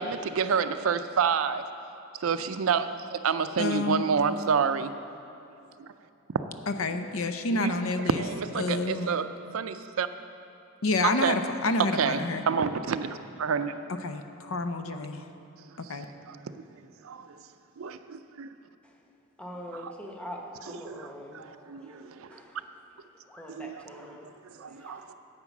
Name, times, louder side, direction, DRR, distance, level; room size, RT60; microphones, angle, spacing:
voice 1, 0.0-1.6 2.2-2.9 3.1-4.9 5.8-5.9 7.5-7.7 8.2-9.3 9.5-10.1 11.2-11.4 11.9-13.7 16.0-16.4 17.0-17.4 17.8-18.5 19.7-19.9 20.7-22.3 23.5-23.8 24.4-25.1, right 6 dB, 70° right, 11 dB, 0.4 m, -29 dB
voice 2, 3.6-4.1 6.8-8.2 8.6-9.1 10.8-12.4 14.0-15.2 15.8-16.0, left 2 dB, 75° left, 8 dB, 0.6 m, -29 dB
voice 3, 19.4-22.7 23.3-24.3 24.6-25.1, equal, 5° left, 0 dB, 1.0 m, -44 dB
9.6 x 8.0 x 6.0 m, 2.7 s
head